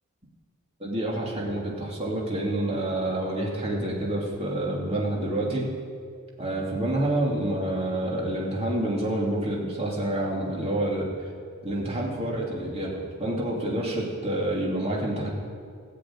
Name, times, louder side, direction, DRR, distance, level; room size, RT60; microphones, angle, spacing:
voice 1, 0.8-5.7 6.4-11.3 11.6-15.3, right 1 dB, 25° right, -3 dB, 2.8 m, -28 dB
15.0 x 7.6 x 8.8 m, 2.2 s
head